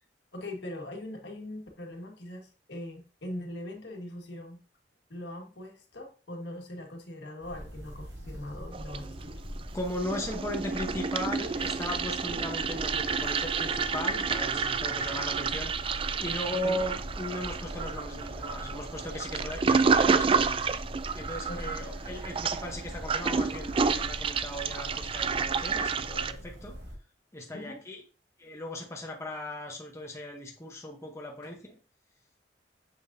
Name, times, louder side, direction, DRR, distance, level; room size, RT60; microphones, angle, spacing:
voice 1, 0.3-4.6 5.1-9.4 16.6-16.8 21.5-21.7 27.5-27.8 31.4-31.5, left 1 dB, 70° left, 1 dB, 1.6 m, -41 dB
sound 1, 7.4-26.9, equal, 80° right, 2.0 m, -42 dB
Toilet flush, 8.7-9.6 9.8-26.3, right 5 dB, 30° right, 0.3 m, -30 dB
voice 2, 9.7-20.7 21.1-26.8 27.3-28.0 28.4-31.8, left 1 dB, 15° left, 0 dB, 0.9 m, -37 dB
7.2 x 6.1 x 2.7 m, 0.37 s
head